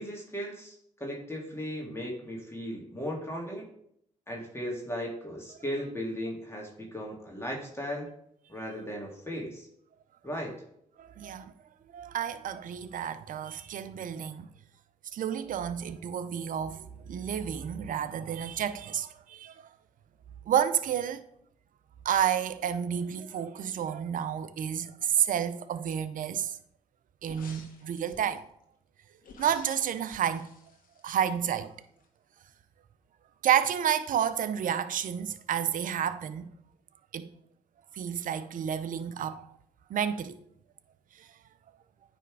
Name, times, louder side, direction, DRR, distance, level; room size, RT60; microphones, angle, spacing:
voice 1, 0.0-3.7 4.3-8.1 8.5-9.7 10.2-10.5, equal, 15° left, 2.0 m, -36 dB
voice 2, 11.0-11.5 11.9-14.5 15.1-19.6 20.5-21.2 22.0-26.6 27.2-28.4 29.4-30.5 31.0-31.7 33.4-36.5 37.1-37.3 37.9-39.5 39.9-40.4 41.2-41.3, right 9 dB, 60° right, 0.6 m, -30 dB
sound 1, 27.2-28.4 29.2-31.7 32.0-32.1, left 4 dB, 60° left, 1.5 m, -52 dB
9.2 x 3.5 x 4.7 m
hypercardioid pair, 50°, 16 cm